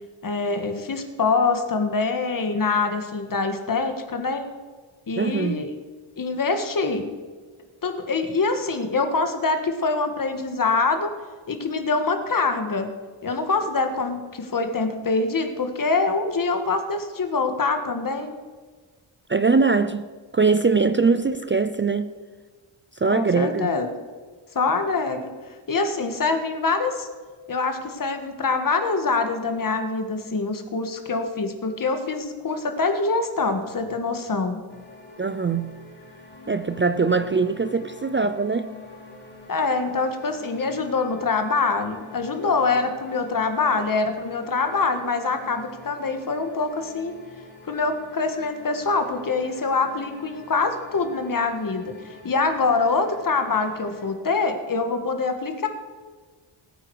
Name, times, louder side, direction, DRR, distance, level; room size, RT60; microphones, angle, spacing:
voice 1, 0.2-4.4 5.1-5.7 6.2-7.1 7.8-11.1 11.5-12.9 13.2-18.3 23.1-23.9 24.6-25.3 25.7-27.1 27.5-34.6 39.5-47.1 47.7-55.7, left 4 dB, 40° left, 7 dB, 1.6 m, -24 dB
voice 2, 5.2-5.6 19.3-20.1 20.3-22.1 23.0-23.8 35.2-35.7 36.5-38.7, right 4 dB, 25° right, 11 dB, 0.4 m, -22 dB
sound 1, 34.7-54.1, left 3 dB, 20° left, 3.7 m, -46 dB
20.0 x 8.8 x 4.8 m, 1.5 s
wide cardioid pair, 150°, 50 cm